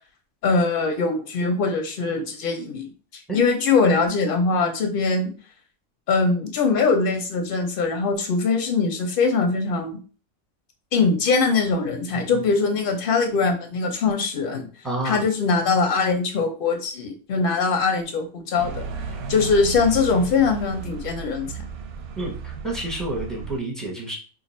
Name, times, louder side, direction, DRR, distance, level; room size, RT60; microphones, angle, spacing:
voice 1, 0.4-2.9 3.1-5.3 6.1-9.9 10.9-14.7 15.0-18.9 19.3-21.5, left 4 dB, 50° left, 4 dB, 0.8 m, -22 dB
voice 2, 14.8-15.2 19.1-19.2 22.2-24.2, right 2 dB, ahead, -2 dB, 0.6 m, -30 dB
sound 1, 18.6-23.6, right 5 dB, 65° right, 0.6 m, -34 dB
2.7 x 2.5 x 4.1 m, 0.38 s
omnidirectional pair, 1.4 m